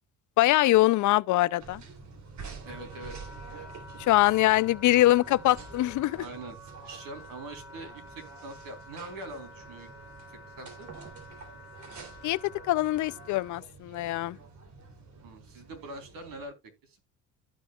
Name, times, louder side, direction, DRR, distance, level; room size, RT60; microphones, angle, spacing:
voice 1, 0.4-1.8 4.0-6.2 12.2-12.4 12.7-14.4, left 16 dB, 60° left, 0.5 m, -23 dB
sound 1, 1.6-16.5, right 4 dB, 55° right, 3.1 m, -48 dB
Wind instrument woodwind instrument, 2.0-13.6, left 1 dB, 5° right, 3.9 m, -50 dB
voice 2, 2.6-3.2 3.5-3.7 6.2-9.9 10.3-10.9 15.2-16.5 16.8-17.1, right 2 dB, 70° right, 3.6 m, -43 dB
15.5 x 5.4 x 2.3 m
supercardioid pair, 90°, 35 cm